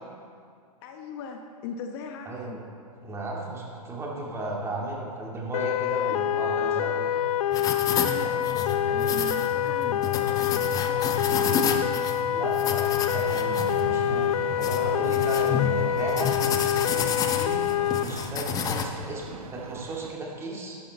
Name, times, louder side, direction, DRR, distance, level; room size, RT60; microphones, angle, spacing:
voice 1, 0.8-2.6 6.0-6.2 7.0-7.3 7.9-11.9 15.7-15.9, left 6 dB, 40° left, 4 dB, 1.0 m, -40 dB
voice 2, 2.3-2.6 3.0-7.1 8.1-8.2 12.2-16.3 16.9-17.7 18.0-20.8, right 2 dB, 15° right, -3 dB, 2.4 m, -35 dB
sound 1, 5.5-18.0, left 10 dB, 65° left, 0.5 m, -26 dB
sound 2, 7.5-18.8, left 6 dB, 20° left, 0.8 m, -30 dB
sound 3, 13.0-20.1, right 8 dB, 65° right, 0.7 m, -43 dB
13.5 x 11.5 x 4.2 m, 2.3 s
hypercardioid pair, 135°, 20 cm